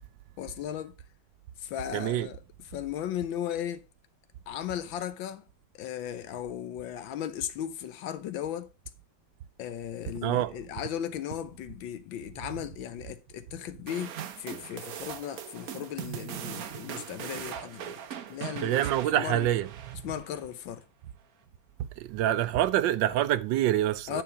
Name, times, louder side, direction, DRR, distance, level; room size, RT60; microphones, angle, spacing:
voice 1, 0.4-0.9 1.6-3.8 4.5-5.4 5.7-8.7 9.6-18.0 18.3-18.8 19.1-19.5 20.0-20.8 24.1-24.2, left 10 dB, 85° left, 1.6 m, -36 dB
voice 2, 1.9-2.3 10.2-10.5 18.6-19.7 22.0-24.2, right 13 dB, 80° right, 1.3 m, -26 dB
sound 1, 13.9-20.4, right 9 dB, 60° right, 1.1 m, -40 dB
9.6 x 4.5 x 5.4 m
omnidirectional pair, 2.1 m